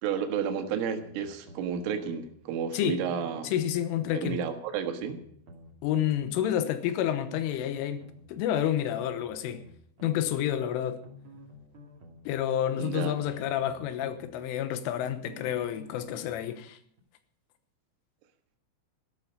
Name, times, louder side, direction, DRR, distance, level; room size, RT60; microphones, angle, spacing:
voice 1, 0.0-3.5 4.1-5.2 12.8-13.2, right 7 dB, 85° right, 4.1 m, -31 dB
sound 1, 1.0-2.3 3.0-4.3 5.0-6.3 7.0-8.3 9.0-10.3 11.0-12.3 13.0-14.3 15.0-16.3 17.0-17.1, left 1 dB, 40° right, 2.2 m, -51 dB
voice 2, 3.4-4.4 5.8-9.7 10.0-11.0 12.3-16.8, left 10 dB, 90° left, 3.6 m, -29 dB
13.5 x 12.5 x 5.2 m
omnidirectional pair, 5.7 m